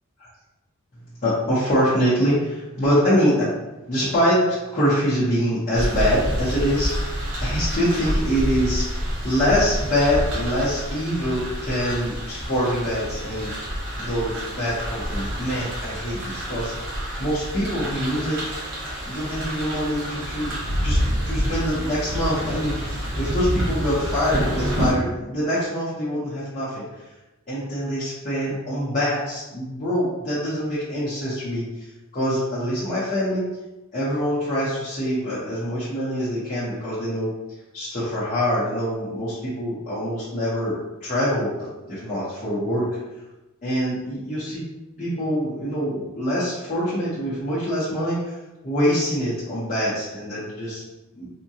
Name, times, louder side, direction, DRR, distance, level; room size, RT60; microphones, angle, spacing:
voice 1, 1.2-3.5 3.9-4.4 4.7-13.5 14.0-16.9 17.2-18.4 18.8-20.5 20.8-21.0 21.2-26.8 27.5-31.6 32.1-33.4 33.9-37.3 37.7-40.7 41.0-41.5 41.9-42.9 43.6-44.6 45.0-48.4 48.6-50.8 51.2-51.3, equal, 35° left, -10 dB, 0.7 m, -24 dB
sound 1, 5.7-24.9, equal, 55° right, 0.9 m, -28 dB
3.6 x 2.2 x 2.7 m, 1.0 s
head